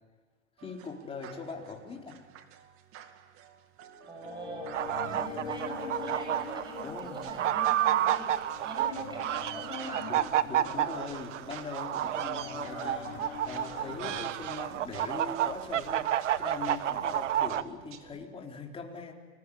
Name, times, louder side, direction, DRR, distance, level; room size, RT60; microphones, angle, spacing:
voice 1, 0.6-2.2 6.8-7.2 10.1-19.1, left 4 dB, 15° left, 0 dB, 4.3 m, -41 dB
sound 1, 0.6-18.2, right 9 dB, 40° right, 2.3 m, -52 dB
sound 2, 3.8-14.2, left 7 dB, 80° left, 4.3 m, -44 dB
voice 2, 4.1-10.1, equal, 15° right, 2 dB, 6.9 m, -43 dB
sound 3, 4.7-17.6, right 12 dB, 80° right, 1.2 m, -30 dB
29.0 x 21.0 x 8.8 m, 1.5 s
hypercardioid pair, 120°, 36 cm